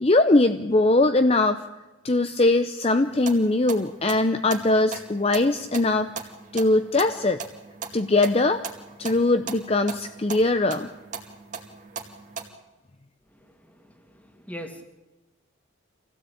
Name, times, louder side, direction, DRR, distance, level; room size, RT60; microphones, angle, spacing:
voice 1, 0.0-1.6 2.0-6.1 6.5-7.4 7.9-8.6 9.0-10.9, left 2 dB, 30° left, 9 dB, 0.7 m, -21 dB
sound 1, 3.0-12.5, right 5 dB, 40° right, 2.4 m, -39 dB
voice 2, 13.3-14.8, equal, 5° left, 5 dB, 2.3 m, -42 dB
25.5 x 16.5 x 8.6 m, 1.1 s
head